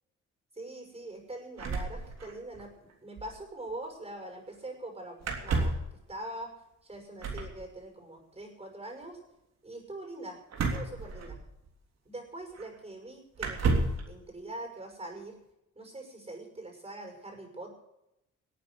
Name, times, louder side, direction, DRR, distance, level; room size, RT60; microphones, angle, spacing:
voice 1, 0.5-6.5 6.8-9.2 9.6-10.4 10.7-11.4 12.0-15.4 15.7-17.7, right 1 dB, 20° right, 4 dB, 6.2 m, -43 dB
sound 1, 1.6-2.7 2.9-3.0 3.2-3.4 5.2-5.9 7.2-7.6 10.5-11.7 12.6-12.7 13.4-14.1, right 3 dB, 60° right, 3.4 m, -31 dB
19.0 x 8.9 x 6.6 m, 0.86 s
cardioid pair, 90°, 30 cm